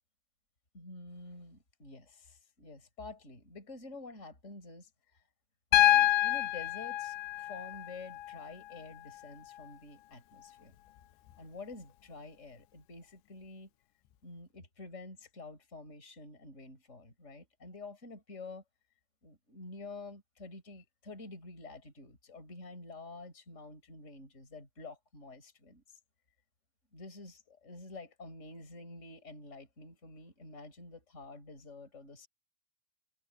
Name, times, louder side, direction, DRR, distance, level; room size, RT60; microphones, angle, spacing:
voice 1, 0.7-4.9 5.7-10.8 11.4-13.7 14.2-18.6 19.2-26.0 26.9-32.3, left 3 dB, 15° left, 5.9 m, -49 dB
Piano, 5.7-9.7 11.3-11.4, left 15 dB, 85° left, 3.2 m, -29 dB
omnidirectional pair, 5.1 m